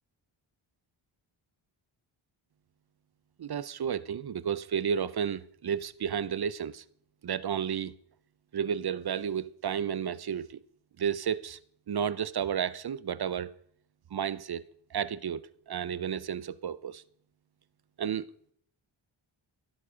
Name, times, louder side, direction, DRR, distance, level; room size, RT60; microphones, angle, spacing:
voice 1, 3.4-6.8 7.2-7.9 8.5-10.6 11.0-11.6 11.9-13.5 14.1-14.6 14.9-17.0 18.0-18.3, right 8 dB, 50° right, 0.8 m, -32 dB
15.5 x 12.0 x 5.1 m
cardioid pair, 90°, 48 cm